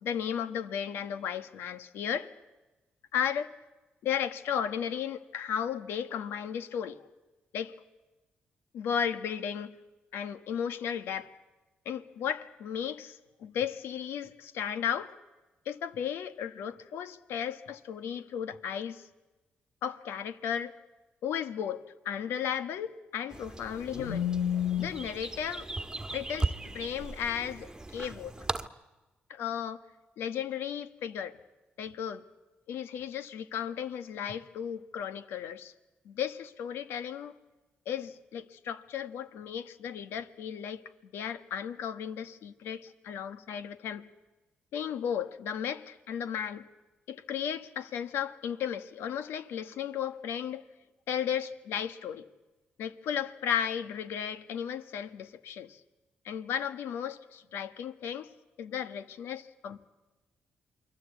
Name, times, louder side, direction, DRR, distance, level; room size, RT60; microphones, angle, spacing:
voice 1, 0.0-2.3 3.1-3.5 4.0-7.0 7.5-7.7 8.7-9.7 10.1-11.3 11.8-15.1 15.6-19.0 19.8-20.7 21.2-25.7 26.1-28.3 29.3-29.8 30.2-31.4 31.8-32.2 32.7-35.7 36.0-37.3 37.8-40.8 41.1-44.1 44.7-46.7 47.1-50.6 51.1-52.3 52.8-55.8 56.2-58.3 58.6-59.8, left 8 dB, 85° left, 1.4 m, -34 dB
sound 1, 23.3-28.7, right 2 dB, 15° right, 1.5 m, -37 dB
28.5 x 22.0 x 8.3 m
cardioid pair, 70°, 4 cm